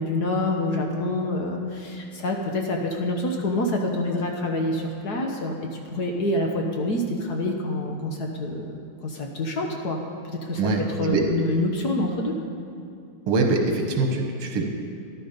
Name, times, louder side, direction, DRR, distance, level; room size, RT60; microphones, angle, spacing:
voice 1, 0.0-10.0 10.3-10.6 11.0-12.3, left 1 dB, 55° left, 2 dB, 1.5 m, -27 dB
voice 2, 10.6-11.2 13.3-14.6, right 3 dB, 80° right, 3 dB, 2.2 m, -23 dB
13.5 x 11.0 x 5.2 m, 2.5 s
omnidirectional pair, 2.3 m